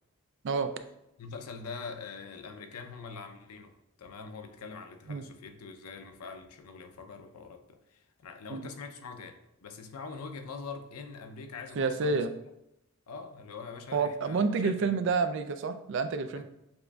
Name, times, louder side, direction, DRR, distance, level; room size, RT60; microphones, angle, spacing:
voice 1, 1.2-12.3 13.1-14.9 16.3-16.4, left 4 dB, 85° left, 7 dB, 0.5 m, -44 dB
voice 2, 11.8-12.3 13.9-16.4, right 4 dB, 55° right, 10 dB, 0.3 m, -29 dB
6.9 x 2.5 x 2.3 m, 0.86 s
head